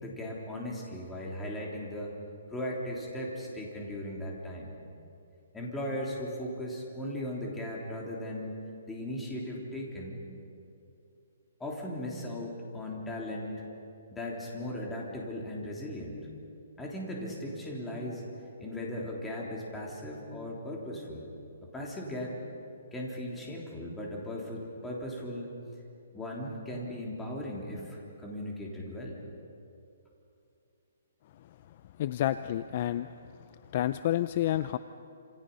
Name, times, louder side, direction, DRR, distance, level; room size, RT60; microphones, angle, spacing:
voice 1, 0.0-2.1 2.5-4.7 5.5-8.6 8.9-10.2 11.6-13.6 14.1-16.2 16.8-21.3 21.7-22.4 22.9-25.5 26.1-29.2, left 1 dB, 5° left, -3 dB, 3.6 m, -37 dB
voice 2, 32.0-33.1 33.7-34.8, left 12 dB, 35° left, 12 dB, 0.5 m, -29 dB
29.0 x 27.5 x 5.6 m, 2.7 s
hypercardioid pair, 165°, 0 cm